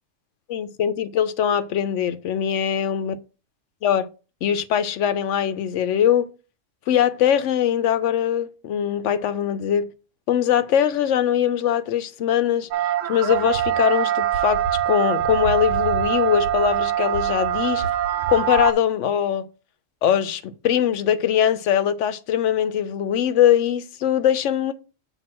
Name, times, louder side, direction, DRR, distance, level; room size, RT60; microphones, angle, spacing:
voice 1, 0.5-3.2 3.8-4.1 4.4-6.3 6.9-9.9 10.3-12.7 13.1-17.9 18.3-19.5 20.0-24.7, left 9 dB, 75° left, 1.0 m, -21 dB
sound 1, 12.7-18.7, right 11 dB, 85° right, 1.0 m, -23 dB
7.4 x 2.9 x 6.0 m
omnidirectional pair, 1.3 m